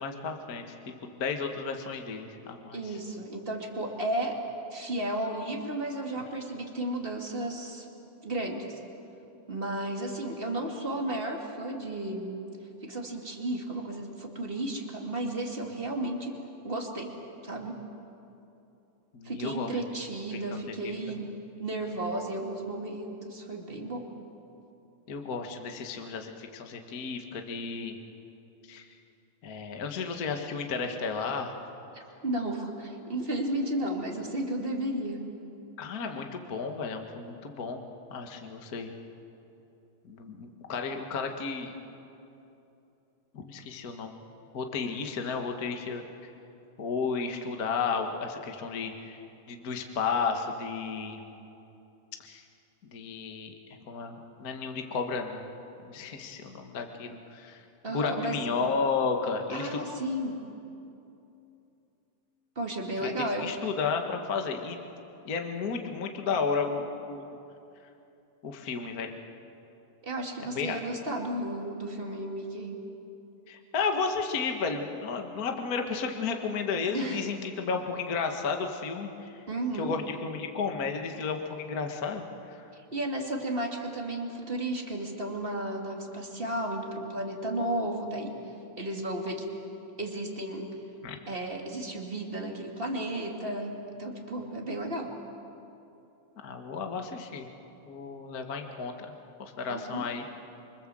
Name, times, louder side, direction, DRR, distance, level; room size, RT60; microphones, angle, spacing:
voice 1, 0.0-3.0 19.1-19.8 20.3-20.4 20.8-20.9 25.1-28.0 28.7-28.9 29.4-31.5 35.8-37.8 38.1-38.9 40.0-41.7 43.3-44.2 44.5-46.3 46.8-49.2 49.5-51.2 52.2-52.4 52.9-53.5 53.9-55.5 55.8-57.6 57.9-59.9 63.0-64.8 65.2-67.3 68.4-69.1 70.4-70.8 73.5-79.4 79.7-82.2 82.5-82.6 91.0-91.2 96.4-97.5 97.9-99.1 99.4-100.2, left 5 dB, 55° left, 4 dB, 1.0 m, -33 dB
voice 2, 2.7-4.4 4.7-7.9 8.2-8.8 9.5-12.4 12.8-17.2 17.4-17.8 19.2-21.3 21.6-24.1 31.9-35.3 57.8-58.6 59.5-60.4 62.6-63.5 70.0-72.9 76.9-77.2 79.5-80.0 82.7-88.4 88.8-89.5 90.0-90.8 91.3-95.1 99.7-100.0, right 1 dB, 20° right, 1 dB, 1.7 m, -33 dB
27.0 x 24.5 x 7.7 m, 2.8 s
omnidirectional pair, 4.2 m